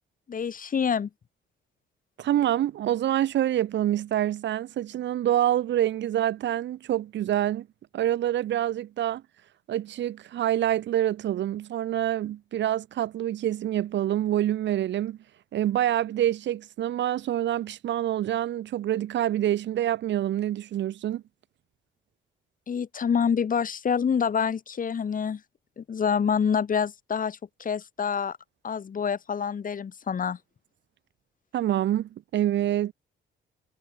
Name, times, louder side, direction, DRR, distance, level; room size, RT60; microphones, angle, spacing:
voice 1, 0.3-1.1 22.7-25.4 25.8-28.4 28.6-30.4, left 7 dB, 45° left, 2.0 m, -27 dB
voice 2, 2.2-7.7 7.9-9.2 9.7-15.2 15.5-21.2 31.5-32.9, right 12 dB, 65° right, 0.8 m, -26 dB
cardioid pair, 90°, 20 cm